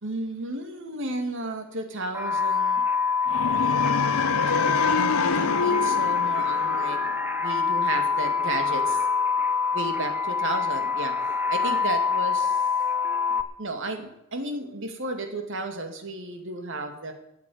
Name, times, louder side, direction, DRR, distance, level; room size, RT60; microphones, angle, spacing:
voice 1, 0.0-2.8 4.2-7.0 7.4-9.0 9.7-12.6 13.6-17.1, right 2 dB, 60° right, 6 dB, 2.3 m, -33 dB
sound 1, 2.1-13.4, left 5 dB, 10° right, 0.9 m, -25 dB
sound 2, 3.3-7.4, left 4 dB, 75° left, 0.9 m, -27 dB
13.5 x 8.2 x 9.5 m, 0.82 s
head